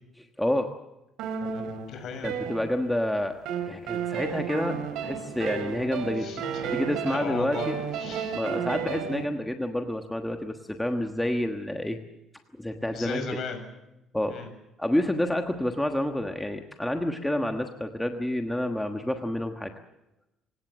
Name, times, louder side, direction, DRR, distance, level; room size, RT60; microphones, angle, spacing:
voice 1, 0.2-0.7 2.2-3.4 3.7-6.4 6.7-7.7 8.3-12.0 12.6-13.2 14.1-14.4 14.8-19.7, left 1 dB, 5° left, 4 dB, 1.3 m, -29 dB
sound 1, 1.2-3.0 3.5-9.2, right 7 dB, 70° right, 3.7 m, -32 dB
voice 2, 1.5-2.3 6.2-6.7 7.1-7.7 8.0-8.4 12.9-13.6 14.3-14.5, left 5 dB, 50° left, 6 dB, 6.5 m, -36 dB
27.0 x 17.0 x 7.5 m, 0.90 s
cardioid pair, 155°, 0 cm